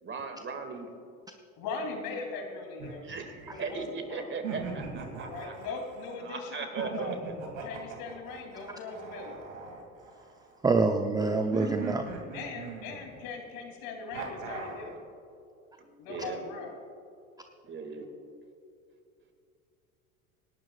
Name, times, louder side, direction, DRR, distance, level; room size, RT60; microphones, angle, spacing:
voice 1, 0.0-0.9 3.0-5.5 6.2-7.3 15.8-16.4 17.6-18.1, right 4 dB, 25° right, 5 dB, 2.1 m, -38 dB
voice 2, 1.6-3.0 3.5-3.8 4.1-4.3 5.2-7.1 7.6-9.5 12.3-15.0 16.0-16.7, left 4 dB, 55° left, 2 dB, 3.1 m, -39 dB
sound 1, 2.8-3.9 4.4-6.1 6.8-10.5 11.5-13.3 14.1-14.9, right 5 dB, 70° right, 2.7 m, -40 dB
voice 3, 10.6-12.0, right 3 dB, 10° right, 5 dB, 0.6 m, -25 dB
26.0 x 12.0 x 2.4 m, 2.6 s
hypercardioid pair, 80°, 42 cm